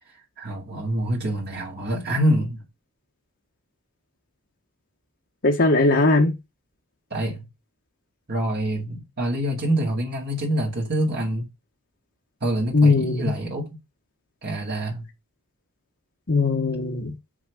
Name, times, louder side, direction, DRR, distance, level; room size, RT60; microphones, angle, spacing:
voice 1, 0.4-2.6 7.1-7.5 8.3-11.5 12.4-13.7 14.4-15.1, right 1 dB, 50° right, 2.2 m, -26 dB
voice 2, 5.4-6.3 12.7-13.3 16.3-17.1, left 3 dB, 55° left, 1.2 m, -19 dB
6.2 x 4.7 x 6.4 m
head